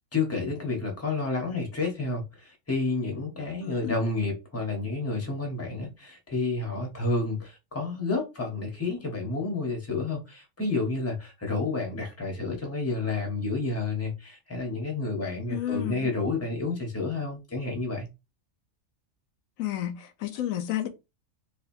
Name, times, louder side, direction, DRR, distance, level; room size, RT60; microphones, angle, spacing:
voice 1, 0.1-18.1, left 3 dB, 10° left, 0.9 m, -30 dB
voice 2, 3.6-4.0 15.5-16.1 19.6-20.9, left 12 dB, 75° left, 1.0 m, -31 dB
4.3 x 2.6 x 2.6 m
omnidirectional pair, 1.5 m